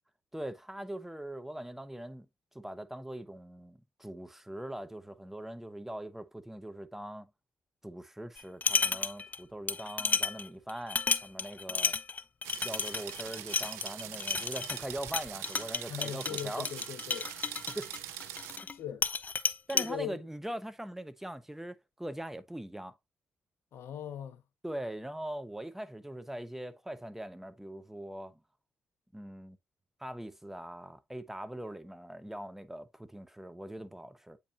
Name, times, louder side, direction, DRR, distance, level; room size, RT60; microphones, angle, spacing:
voice 1, 0.3-2.3 2.5-7.3 7.8-11.9 12.6-16.7 17.7-17.9 18.5-18.7 19.7-22.9 24.6-28.4 29.1-29.6 30.0-34.4, right 1 dB, 5° right, 1.0 m, -41 dB
sound 1, 8.4-9.4 9.7-18.7 19.0-19.9, left 5 dB, 40° left, 0.5 m, -32 dB
sound 2, 12.4-18.6, right 12 dB, 90° right, 0.6 m, -43 dB
voice 2, 15.9-17.3 18.7-19.0 19.7-20.2 23.7-24.4, left 9 dB, 75° left, 1.0 m, -40 dB
8.5 x 4.6 x 2.6 m
supercardioid pair, 55°, 4 cm